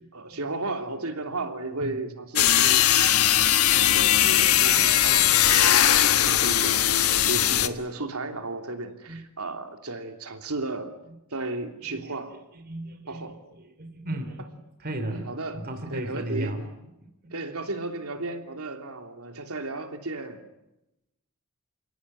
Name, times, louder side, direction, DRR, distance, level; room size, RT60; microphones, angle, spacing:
voice 1, 0.1-2.9 3.2-10.9 11.3-12.4 13.1-13.4 15.1-15.6 15.9-16.6 17.3-20.4, right 2 dB, 90° right, 6 dB, 3.1 m, -34 dB
sound 1, 2.4-7.7, left 11 dB, 85° left, 1.5 m, -20 dB
voice 2, 4.1-4.9 5.2-5.3 9.1-9.2 11.8-12.2 12.5-14.4 14.8-15.3 15.5-16.7 17.0-17.3, right 1 dB, 45° right, 6 dB, 3.1 m, -36 dB
28.5 x 17.5 x 9.9 m, 0.92 s
head